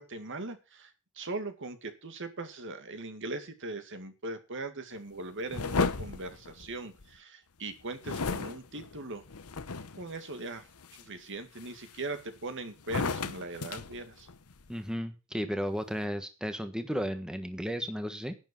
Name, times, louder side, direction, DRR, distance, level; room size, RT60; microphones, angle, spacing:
voice 1, 0.0-9.2 10.0-14.3, right 2 dB, 60° right, 8 dB, 2.3 m, -40 dB
sound 1, 5.5-7.2 8.0-10.1 10.6-11.0 11.6-12.4 12.8-14.7, left 4 dB, 80° left, 1.0 m, -34 dB
voice 2, 14.7-18.4, equal, 5° right, 8 dB, 1.4 m, -34 dB
11.5 x 10.0 x 5.5 m, 0.30 s
head